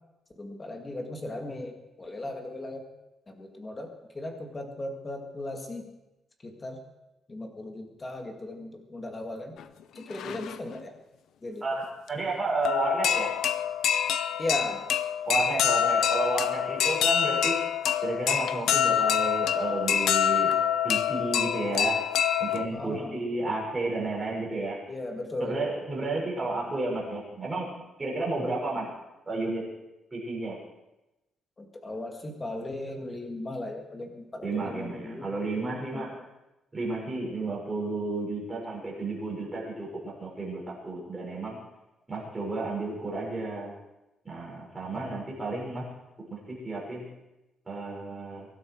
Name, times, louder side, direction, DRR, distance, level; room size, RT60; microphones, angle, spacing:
voice 1, 0.4-2.9 3.3-5.9 6.4-6.8 7.3-9.6 10.0-10.9 11.4-11.6 14.4-14.8 22.7-23.2 24.9-25.6 31.6-35.3 35.9-36.2 44.9-45.2, left 1 dB, 20° left, 4 dB, 2.0 m, -37 dB
sound 1, 9.6-9.7 10.0-10.8 12.1-12.2 12.7-22.7, left 9 dB, 75° left, 0.7 m, -26 dB
voice 2, 11.6-13.4 15.3-17.6 18.0-20.5 20.8-22.0 22.4-24.8 25.4-28.9 29.3-29.6 30.1-30.6 34.4-36.1 36.7-41.6 42.1-43.7 44.2-45.9 46.3-47.1 47.7-48.5, right 2 dB, 15° right, -4 dB, 5.8 m, -32 dB
23.0 x 12.5 x 4.7 m, 0.97 s
cardioid pair, 175°, 0 cm